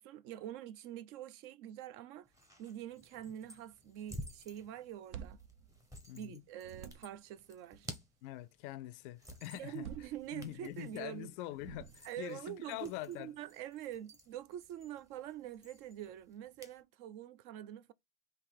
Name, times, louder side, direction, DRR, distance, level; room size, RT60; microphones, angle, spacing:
voice 1, 0.0-2.3 2.6-5.4 6.1-7.9 9.5-11.3 12.0-17.9, right 11 dB, 40° right, 0.5 m, -45 dB
sound 1, 2.3-16.8, equal, 10° right, 0.9 m, -54 dB
sound 2, 4.8-6.3 6.6-7.4 9.5-10.8 11.5-12.3, right 8 dB, 75° right, 0.7 m, -50 dB
voice 2, 6.1-6.4 8.2-9.9 10.3-13.3, left 15 dB, 50° left, 0.5 m, -44 dB
3.6 x 2.8 x 4.6 m
hypercardioid pair, 120°, 35 cm